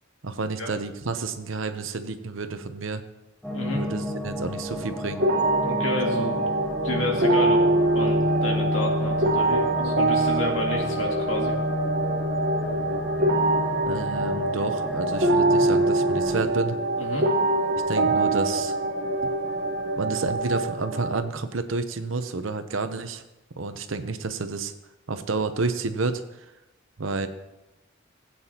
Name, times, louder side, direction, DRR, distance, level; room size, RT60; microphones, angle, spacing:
voice 1, 0.2-3.0 3.7-5.2 13.9-16.8 17.9-18.7 19.2-19.3 20.0-23.2 23.6-24.7 25.1-26.2 27.0-27.3, right 3 dB, 80° right, 9 dB, 0.8 m, -30 dB
sound 1, 3.4-16.4, left 1 dB, ahead, 1.0 m, -30 dB
voice 2, 3.5-3.8 5.6-6.5 6.8-7.6 7.9-11.6 17.0-17.3, left 1 dB, 80° left, 0 dB, 2.3 m, -30 dB
sound 2, 5.2-21.2, right 2 dB, 55° right, 1.3 m, -24 dB
16.5 x 8.7 x 2.9 m, 0.96 s
head